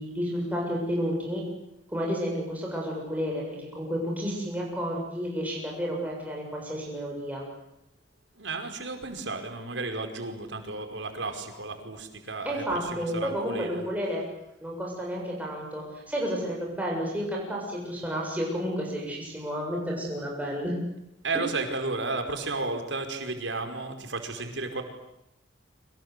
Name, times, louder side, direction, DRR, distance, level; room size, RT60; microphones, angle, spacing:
voice 1, 0.0-1.5 1.9-7.4 12.4-14.2 14.6-20.8, equal, 10° right, -2 dB, 7.6 m, -31 dB
voice 2, 8.3-13.8 21.2-24.8, right 3 dB, 80° right, 6 dB, 5.1 m, -33 dB
28.0 x 26.0 x 8.3 m, 0.82 s
head